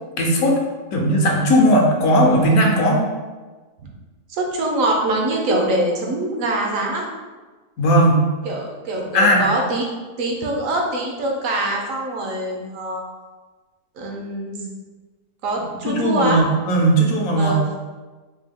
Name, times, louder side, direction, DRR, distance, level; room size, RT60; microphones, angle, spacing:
voice 1, 0.2-0.6 0.9-3.0 7.8-8.2 9.1-9.4 15.8-17.6, right 1 dB, 70° left, 0 dB, 1.0 m, -17 dB
voice 2, 4.3-7.0 8.4-9.8 10.2-13.0 14.0-14.7 15.4-16.4 17.4-17.8, right 1 dB, 65° right, 0 dB, 1.0 m, -23 dB
4.5 x 2.3 x 3.4 m, 1.3 s
omnidirectional pair, 1.7 m